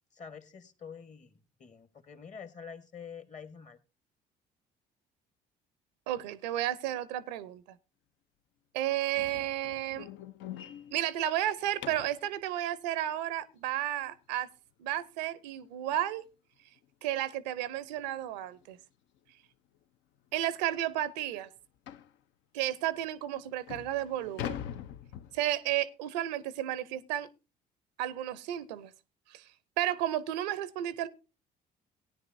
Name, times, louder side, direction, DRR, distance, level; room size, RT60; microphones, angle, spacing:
voice 1, 0.1-3.8, left 6 dB, 35° left, 1.3 m, -47 dB
voice 2, 6.1-7.8 8.7-10.1 10.9-14.5 14.8-16.2 17.0-18.8 20.3-21.5 22.5-24.6 25.3-27.3 28.0-28.9 29.3-31.1, right 12 dB, 80° right, 0.6 m, -32 dB
sound 1, 9.1-12.2 15.1-15.2 15.6-15.8 16.2-16.3 16.8-16.9 18.0-18.1 18.5-18.6 19.3-19.4 19.7-19.8 20.3-20.4 21.9-22.2 22.9-23.0 23.5-25.8, left 10 dB, 65° left, 0.6 m, -43 dB
17.5 x 9.8 x 2.6 m
hypercardioid pair, 55°, 21 cm